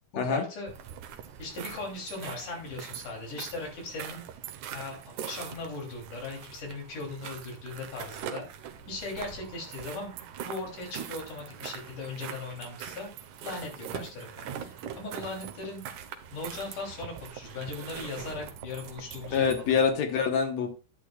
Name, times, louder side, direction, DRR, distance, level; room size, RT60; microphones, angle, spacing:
voice 1, 0.2-0.7 1.4-4.2 4.7-10.1 10.4-13.1 13.4-15.8 16.3-19.7, left 3 dB, 85° left, 0 dB, 4.7 m, -38 dB
sound 1, 0.7-19.9, right 9 dB, 85° right, 2.5 m, -42 dB
voice 2, 19.3-20.7, left 6 dB, 70° left, 6 dB, 2.3 m, -25 dB
11.0 x 10.0 x 2.4 m, 0.35 s
omnidirectional pair, 3.5 m